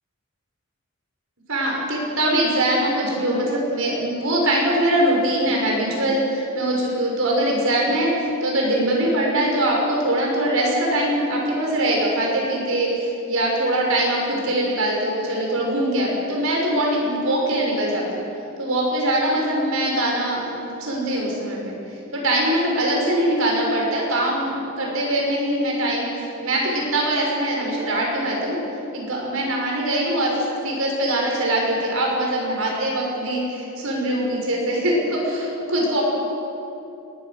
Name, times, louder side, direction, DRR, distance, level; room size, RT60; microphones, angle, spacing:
voice 1, 1.5-8.1 8.4-18.2 18.6-21.7 22.1-28.6 28.9-30.3 30.6-36.0, right 1 dB, 65° right, -2 dB, 6.2 m, -22 dB
22.0 x 20.5 x 6.7 m, 2.9 s
head